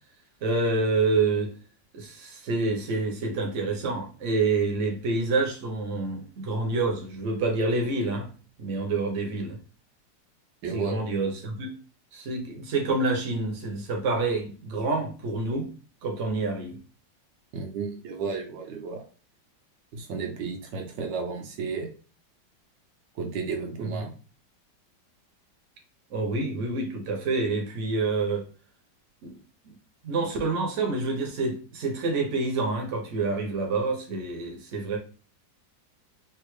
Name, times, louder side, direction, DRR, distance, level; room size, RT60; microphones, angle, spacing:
voice 1, 0.4-1.5 1.9-8.3 8.6-9.6 10.7-11.7 12.1-15.7 16.0-16.8 23.8-24.0 26.1-28.5 29.2-29.3 29.6-29.7 30.0-35.0, right 3 dB, 50° right, 1.0 m, -27 dB
voice 2, 10.6-11.0 17.5-19.0 19.9-21.9 23.1-24.1, right 5 dB, 80° right, 1.5 m, -33 dB
3.5 x 2.6 x 3.1 m
omnidirectional pair, 2.0 m